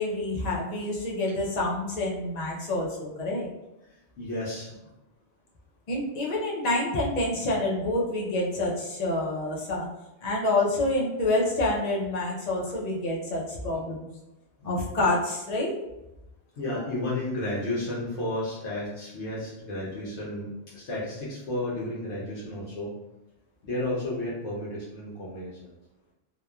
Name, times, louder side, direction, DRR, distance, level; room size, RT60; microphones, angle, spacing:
voice 1, 0.0-3.5 5.9-9.9 10.2-14.1 14.6-15.7, left 2 dB, 50° left, -3 dB, 0.5 m, -27 dB
voice 2, 3.8-4.9 13.7-13.8 14.6-14.7 16.5-22.9 23.6-25.7, left 1 dB, 75° left, -7 dB, 1.0 m, -33 dB
2.9 x 2.1 x 2.3 m, 0.95 s
omnidirectional pair, 1.2 m